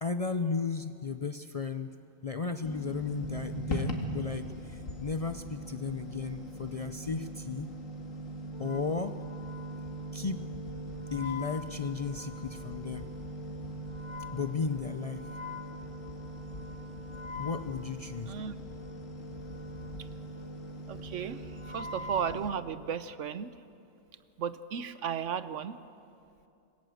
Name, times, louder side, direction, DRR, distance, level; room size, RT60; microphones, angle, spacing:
voice 1, 0.0-1.9 2.2-7.7 8.6-9.2 10.1-10.5 11.1-13.1 14.3-15.2 17.3-18.3, left 5 dB, 40° left, 9 dB, 0.5 m, -34 dB
sound 1, 2.6-22.5, right 1 dB, 90° left, 2.6 m, -41 dB
Wind instrument woodwind instrument, 8.5-23.2, left 4 dB, 25° left, 1.1 m, -47 dB
voice 2, 20.9-21.4 21.7-23.5 24.4-25.8, right 7 dB, 70° right, 13 dB, 1.1 m, -34 dB
26.0 x 20.5 x 7.8 m, 2.6 s
omnidirectional pair, 1.3 m